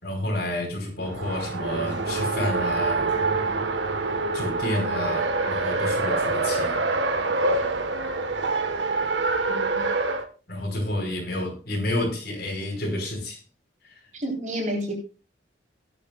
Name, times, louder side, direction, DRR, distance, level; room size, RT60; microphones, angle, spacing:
voice 1, 0.0-3.1 4.3-6.8 10.5-13.4, left 1 dB, 60° left, 1 dB, 5.3 m, -30 dB
Race car auto racing, 1.0-10.2, right 3 dB, 80° right, 1.4 m, -26 dB
voice 2, 9.5-9.9 14.1-15.0, equal, 45° right, 1 dB, 4.0 m, -30 dB
18.0 x 11.5 x 2.4 m, 0.33 s
head